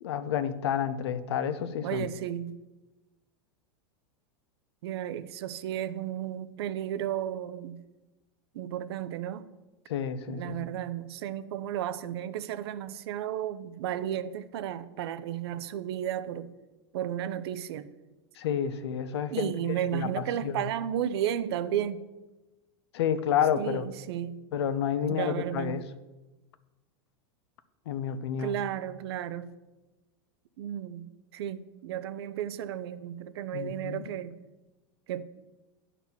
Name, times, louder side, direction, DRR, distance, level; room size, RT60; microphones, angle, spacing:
voice 1, 0.0-2.1 9.9-10.7 18.4-19.5 19.9-20.6 22.9-23.9 24.5-25.8 27.9-28.6 33.5-34.0, left 8 dB, 90° left, 0.7 m, -30 dB
voice 2, 1.8-2.5 4.8-7.8 8.5-9.5 10.3-16.5 16.9-17.9 19.3-22.1 23.6-24.4 25.1-25.8 28.4-29.5 30.6-31.1 31.3-34.4 35.1-35.2, right 10 dB, 75° right, 0.6 m, -33 dB
10.0 x 4.2 x 7.0 m
supercardioid pair, 155°, 13 cm